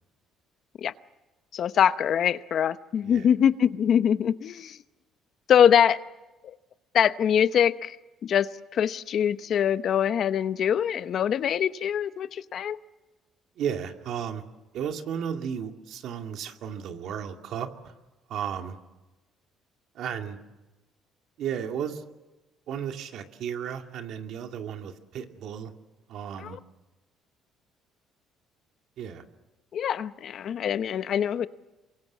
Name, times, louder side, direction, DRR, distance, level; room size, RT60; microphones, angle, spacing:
voice 1, 1.5-4.8 5.5-6.0 6.4-6.5 6.9-8.0 8.2-12.8 26.4-26.6 29.7-31.5, left 9 dB, 50° left, 13 dB, 0.8 m, -23 dB
voice 2, 13.6-14.4 14.7-17.9 18.3-18.8 19.9-20.4 21.4-22.0 22.7-25.7 26.1-26.6 29.0-29.2, right 8 dB, 65° right, 5 dB, 2.4 m, -34 dB
28.0 x 24.0 x 7.4 m, 1.1 s
cardioid pair, 130°, 0 cm